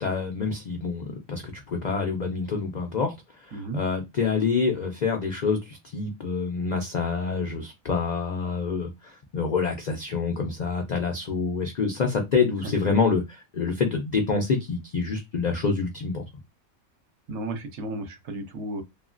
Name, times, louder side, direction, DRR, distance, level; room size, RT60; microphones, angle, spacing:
voice 1, 0.0-3.1 3.4-16.2, left 5 dB, 80° left, 0.4 m, -27 dB
voice 2, 17.3-18.8, right 2 dB, 65° right, 0.8 m, -33 dB
3.0 x 2.4 x 2.4 m
omnidirectional pair, 1.4 m